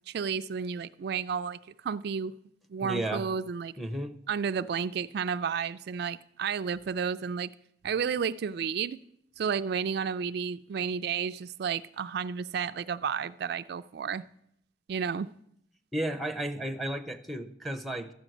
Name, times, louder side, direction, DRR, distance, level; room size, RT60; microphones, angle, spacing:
voice 1, 0.1-1.6 1.8-2.4 2.7-3.7 4.3-7.5 7.8-9.0 9.4-14.2 14.9-15.3, right 6 dB, 65° right, 0.3 m, -32 dB
voice 2, 2.8-3.2 3.8-4.1 15.9-18.1, right 1 dB, ahead, 0.7 m, -33 dB
13.0 x 6.2 x 7.7 m
head